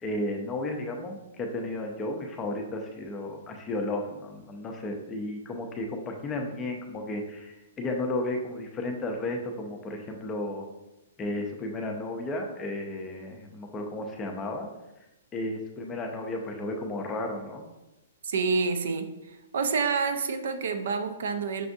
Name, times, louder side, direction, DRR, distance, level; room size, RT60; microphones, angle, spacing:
voice 1, 0.0-10.7 11.2-14.7 15.3-17.7, left 2 dB, 15° left, 2 dB, 0.4 m, -33 dB
voice 2, 18.2-19.1 19.5-21.7, right 4 dB, 70° right, 9 dB, 0.4 m, -28 dB
5.9 x 2.4 x 2.6 m, 0.96 s
hypercardioid pair, 165°, 0 cm